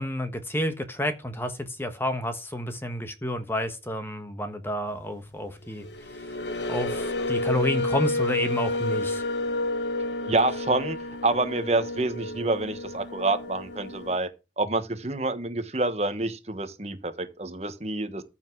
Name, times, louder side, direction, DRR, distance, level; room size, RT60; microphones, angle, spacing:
voice 1, 0.0-5.9 6.7-9.2, left 1 dB, 15° left, 1.2 m, -30 dB
sound 1, 5.8-14.2, left 2 dB, 85° left, 1.3 m, -30 dB
voice 2, 10.2-11.0 11.2-14.3 14.6-18.2, right 2 dB, 35° right, 1.3 m, -27 dB
14.5 x 5.8 x 4.7 m
head